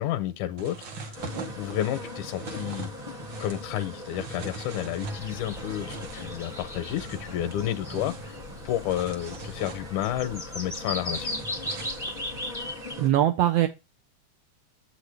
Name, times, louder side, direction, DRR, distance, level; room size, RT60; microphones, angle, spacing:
voice 1, 0.0-2.9 3.4-8.4 8.7-11.4, left 12 dB, 85° left, 2.0 m, -31 dB
sound 1, 0.6-12.4, right 2 dB, 55° right, 1.3 m, -42 dB
sound 2, 1.1-13.1, left 1 dB, 25° right, 1.0 m, -42 dB
sound 3, 5.0-12.9, left 1 dB, 5° right, 0.6 m, -38 dB
voice 2, 11.8-12.2 13.0-13.7, right 12 dB, 75° right, 1.5 m, -23 dB
8.2 x 6.1 x 3.3 m
omnidirectional pair, 3.5 m